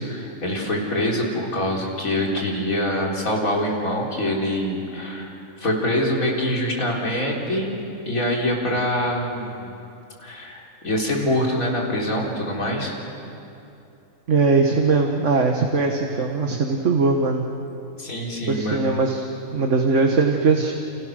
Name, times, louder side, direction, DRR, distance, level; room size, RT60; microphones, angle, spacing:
voice 1, 0.1-7.7 8.0-9.7 10.2-13.0 18.0-18.8, left 1 dB, 70° left, -2 dB, 4.3 m, -25 dB
voice 2, 14.3-17.4 18.5-19.2 19.5-20.7, right 4 dB, 55° right, 2 dB, 1.8 m, -20 dB
29.5 x 28.0 x 6.5 m, 2.8 s
omnidirectional pair, 1.5 m